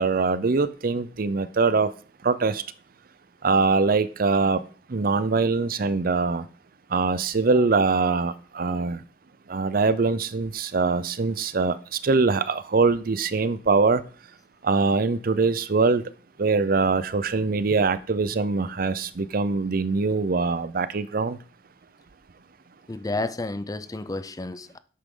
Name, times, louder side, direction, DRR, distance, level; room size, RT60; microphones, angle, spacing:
voice 1, 0.0-1.9 2.2-2.6 3.4-4.6 4.9-6.5 6.9-9.0 9.5-14.0 14.6-16.0 16.4-21.4, right 4 dB, 55° right, 0.6 m, -23 dB
voice 2, 22.9-24.8, left 2 dB, 20° left, 0.5 m, -31 dB
11.0 x 8.5 x 3.8 m
head